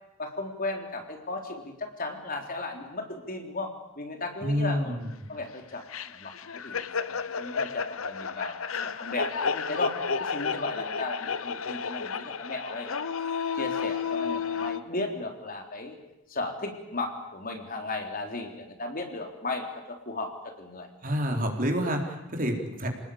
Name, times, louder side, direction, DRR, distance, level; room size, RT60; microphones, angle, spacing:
voice 1, 0.2-5.0 5.3-9.9 10.2-13.1 13.5-16.0 16.3-20.9, left 2 dB, 45° left, 3 dB, 3.8 m, -36 dB
voice 2, 4.4-5.0 21.0-22.9, equal, 40° right, 3 dB, 4.1 m, -28 dB
sound 1, 5.9-14.8, left 6 dB, 75° left, 0.9 m, -32 dB
29.0 x 19.5 x 8.7 m, 0.93 s
head